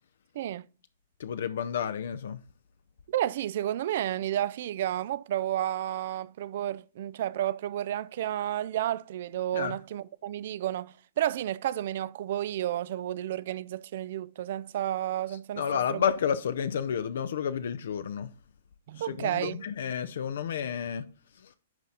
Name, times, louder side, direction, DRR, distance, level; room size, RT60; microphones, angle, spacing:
voice 1, 0.3-0.7 3.1-15.6 15.9-16.0 18.9-19.6, right 12 dB, 50° right, 0.3 m, -31 dB
voice 2, 1.2-2.4 9.5-9.8 15.6-18.3 18.9-21.1 21.3-21.5, left 8 dB, 60° left, 0.5 m, -31 dB
10.5 x 4.1 x 3.8 m
figure-of-eight pair, 110°, 0 cm